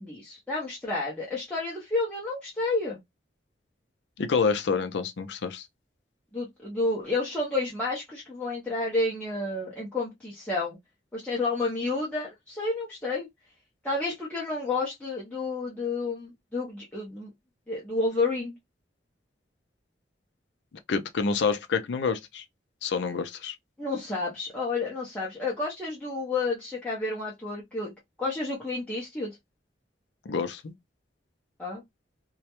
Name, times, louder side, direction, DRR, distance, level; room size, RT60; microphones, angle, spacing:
voice 1, 0.0-3.0 6.3-10.8 11.1-13.3 13.8-17.3 17.7-18.6 23.8-27.9 28.2-29.4 31.6-31.8, left 3 dB, 5° left, 0.6 m, -30 dB
voice 2, 4.2-5.7 20.9-22.4 22.8-23.6 30.3-30.7, left 5 dB, 70° left, 0.4 m, -27 dB
2.2 x 2.0 x 2.8 m
head